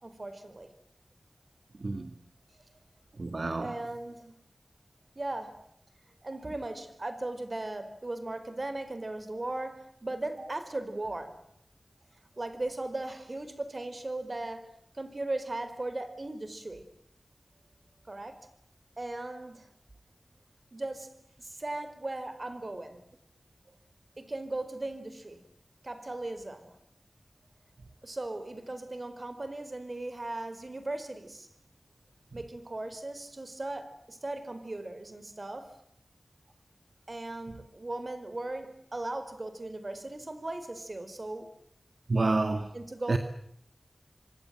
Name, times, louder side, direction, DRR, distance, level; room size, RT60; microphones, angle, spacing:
voice 1, 0.0-0.7 3.6-4.3 5.1-5.6 6.2-11.4 12.4-16.9 18.1-18.5 19.0-19.7 20.7-23.0 24.2-25.4 25.8-26.8 28.0-31.5 32.3-35.8 37.1-41.5 42.7-43.2, right 2 dB, 50° right, 4.8 m, -38 dB
voice 2, 1.8-2.1 3.2-3.7 42.1-42.7 43.1-43.2, right 3 dB, 65° right, 2.1 m, -28 dB
26.0 x 26.0 x 7.7 m
wide cardioid pair, 50°, 0 cm